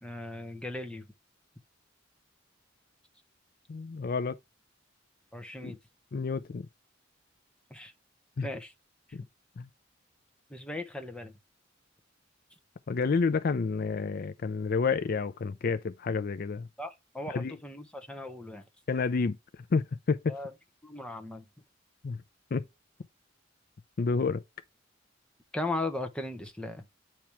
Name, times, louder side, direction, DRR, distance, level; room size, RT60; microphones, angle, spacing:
voice 1, 0.0-1.1 5.3-5.8 7.7-7.9 8.4-8.7 10.5-11.3 16.8-18.6 20.3-20.5 20.8-21.4 25.5-26.8, left 2 dB, 5° left, 0.9 m, -37 dB
voice 2, 3.7-4.4 5.6-5.7 6.1-6.7 8.4-8.5 9.1-9.2 9.6-9.7 12.9-16.7 17.3-17.6 18.9-20.4 22.0-22.2 22.5-22.6 24.0-24.4, left 4 dB, 50° left, 0.4 m, -29 dB
8.5 x 3.0 x 4.5 m
head